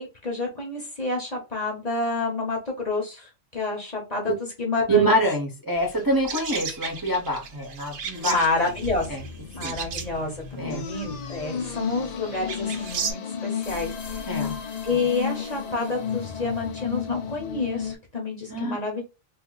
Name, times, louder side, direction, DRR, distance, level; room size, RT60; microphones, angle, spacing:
voice 1, 0.0-5.1 8.2-9.1 9.5-14.4 14.8-19.0, left 3 dB, 35° left, -1 dB, 0.9 m, -29 dB
voice 2, 4.9-8.3 9.1-9.2 9.6-9.8 10.6-10.9 14.3-14.6 18.5-18.8, right 1 dB, 20° right, 0 dB, 0.6 m, -25 dB
sound 1, 5.8-13.1, right 6 dB, 60° right, 0.8 m, -35 dB
sound 2, 8.2-18.0, left 7 dB, 60° left, 0.4 m, -34 dB
2.6 x 2.5 x 3.8 m, 0.28 s
omnidirectional pair, 1.3 m